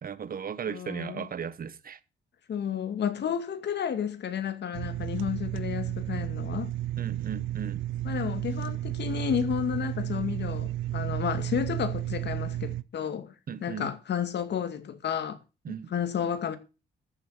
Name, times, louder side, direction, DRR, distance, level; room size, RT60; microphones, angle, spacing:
voice 1, 0.0-2.0 7.0-7.8 13.5-13.9 15.6-15.9, right 7 dB, 45° right, 1.4 m, -36 dB
voice 2, 0.7-1.3 2.5-6.7 8.0-13.3 13.6-15.4 15.7-16.6, left 8 dB, 60° left, 2.3 m, -31 dB
sound 1, 4.7-12.8, right 14 dB, 85° right, 0.7 m, -32 dB
14.0 x 7.5 x 6.5 m
cardioid pair, 90°, 20 cm